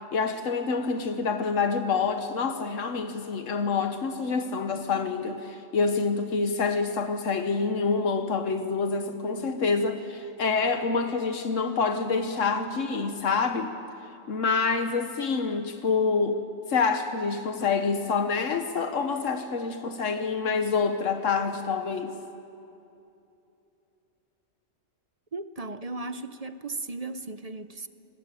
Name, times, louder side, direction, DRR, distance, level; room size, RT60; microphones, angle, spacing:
voice 1, 0.1-13.8 14.3-16.4 16.7-22.1, left 4 dB, 90° left, 7 dB, 1.5 m, -27 dB
voice 2, 25.3-27.9, right 3 dB, 35° right, 11 dB, 0.8 m, -36 dB
28.0 x 20.0 x 9.0 m, 2.8 s
omnidirectional pair, 1.3 m